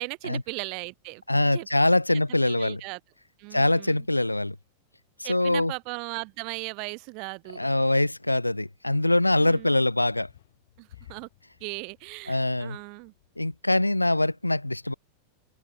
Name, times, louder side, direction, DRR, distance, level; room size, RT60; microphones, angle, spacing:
voice 1, 0.0-1.2 1.5-1.7 2.3-3.0 3.4-4.1 5.2-7.7 9.3-9.8 10.8-11.3 11.6-13.1, right 32 dB, 45° right, 2.4 m, -37 dB
voice 2, 1.3-2.8 3.5-4.6 5.3-5.7 7.6-10.3 12.3-12.8 13.4-14.9, left 1 dB, 85° left, 0.4 m, -23 dB
sound 1, 9.3-13.6, left 13 dB, 60° left, 2.6 m, -57 dB
figure-of-eight pair, 90°, 0 cm